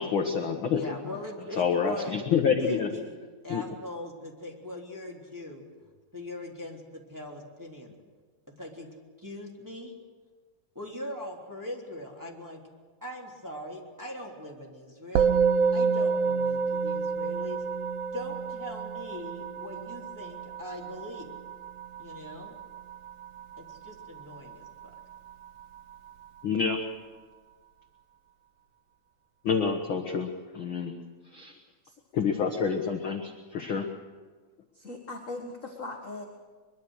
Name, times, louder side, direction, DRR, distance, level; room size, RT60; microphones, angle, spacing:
voice 1, 0.0-0.8 1.6-2.9 3.5-3.6 26.4-26.8 29.4-30.3 30.5-31.0 31.3-31.5 32.1-33.8, left 6 dB, 55° left, 4 dB, 1.6 m, -27 dB
voice 2, 0.7-2.2 2.5-3.2 3.4-5.6 6.1-7.9 8.6-8.9 9.2-10.0 10.7-12.6 13.0-15.3 15.7-17.6 18.1-21.3 22.0-22.5 23.6-24.9, left 1 dB, 5° right, -2 dB, 2.8 m, -41 dB
Musical instrument, 15.2-24.7, right 5 dB, 85° right, 1.3 m, -29 dB
voice 3, 34.7-36.2, left 2 dB, 35° left, 1 dB, 1.4 m, -39 dB
23.5 x 22.5 x 6.5 m, 1.4 s
omnidirectional pair, 3.8 m